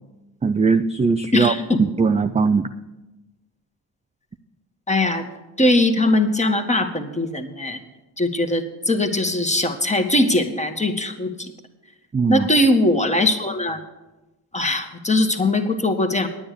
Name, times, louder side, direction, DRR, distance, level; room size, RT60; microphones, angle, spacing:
voice 1, 0.4-1.5 2.0-2.7 12.1-12.5, right 4 dB, 15° right, 8 dB, 0.4 m, -19 dB
voice 2, 1.3-1.8 4.9-5.3 5.6-7.8 8.2-11.5 12.3-13.8 14.5-16.3, left 1 dB, 15° left, 6 dB, 1.5 m, -20 dB
9.8 x 9.0 x 6.7 m, 1.1 s
supercardioid pair, 55°, 50 cm